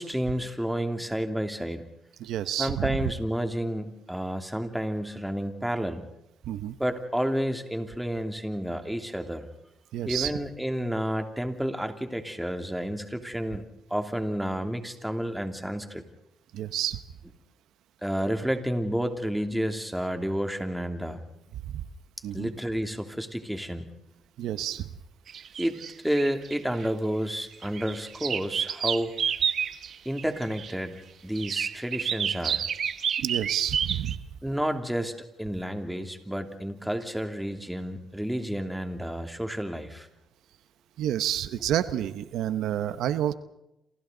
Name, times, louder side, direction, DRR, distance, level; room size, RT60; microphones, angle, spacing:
voice 1, 0.0-1.8 2.6-6.0 6.8-9.5 10.1-13.6 13.9-16.0 18.0-21.2 22.3-23.9 25.6-25.8 26.0-29.1 30.0-32.7 34.4-40.1, equal, 5° right, 5 dB, 2.8 m, -30 dB
voice 2, 2.2-3.0 6.4-6.7 9.9-10.3 16.5-17.0 22.2-22.5 24.4-24.9 33.2-34.1 41.0-43.3, right 11 dB, 85° right, 12 dB, 1.0 m, -29 dB
sound 1, 25.3-26.9 27.4-30.7 31.4-34.2, right 8 dB, 60° right, 1.1 m, -30 dB
28.5 x 27.5 x 4.0 m, 0.88 s
cardioid pair, 90°, 0 cm